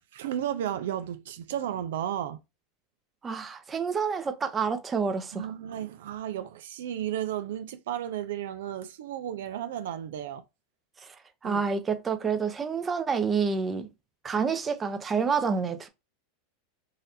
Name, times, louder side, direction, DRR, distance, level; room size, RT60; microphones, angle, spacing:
voice 1, 0.1-2.4 5.3-10.4 11.4-11.6, right 10 dB, 75° right, 0.4 m, -33 dB
voice 2, 3.2-5.5 11.0-11.1 11.4-13.9 14.2-15.9, right 5 dB, 20° right, 0.6 m, -28 dB
4.0 x 2.6 x 2.7 m
hypercardioid pair, 115°, 0 cm